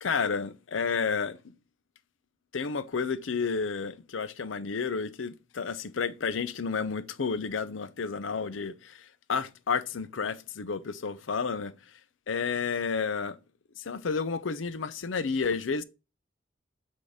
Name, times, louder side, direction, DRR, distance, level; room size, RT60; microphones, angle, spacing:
voice 1, 0.0-1.4 2.5-11.7 12.3-13.4 13.8-15.8, left 5 dB, 80° left, 0.6 m, -31 dB
8.5 x 3.8 x 5.0 m
head